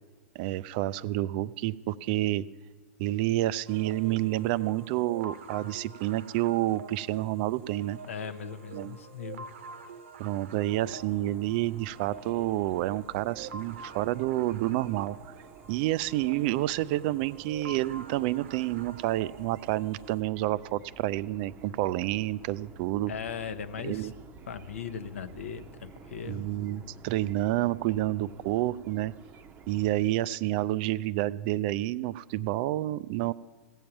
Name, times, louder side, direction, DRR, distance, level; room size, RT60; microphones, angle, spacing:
voice 1, 0.4-2.5 3.0-8.0 8.7-9.0 10.2-15.2 15.7-23.1 23.8-24.1 26.3-29.1 29.7-33.3, right 15 dB, 45° right, 18 dB, 0.3 m, -29 dB
sound 1, 3.7-20.2, right 5 dB, 65° right, 0.8 m, -47 dB
voice 2, 8.1-9.5 23.1-24.1 24.5-26.4, left 7 dB, 70° left, 11 dB, 0.7 m, -38 dB
sound 2, 10.7-29.9, right 5 dB, 25° right, 0.7 m, -52 dB
17.0 x 7.3 x 5.8 m, 1.4 s
figure-of-eight pair, 100°, 7 cm